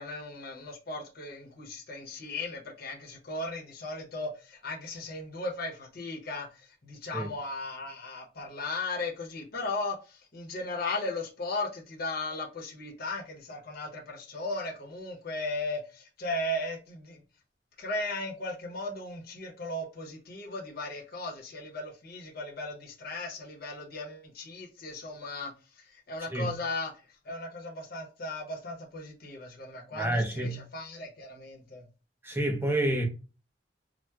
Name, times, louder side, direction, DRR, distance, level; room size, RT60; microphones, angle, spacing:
voice 1, 0.0-17.2 17.8-31.8, left 2 dB, 55° left, 0.8 m, -37 dB
voice 2, 29.9-30.6 32.2-33.0, right 1 dB, 10° right, 0.7 m, -29 dB
4.3 x 2.1 x 2.3 m
head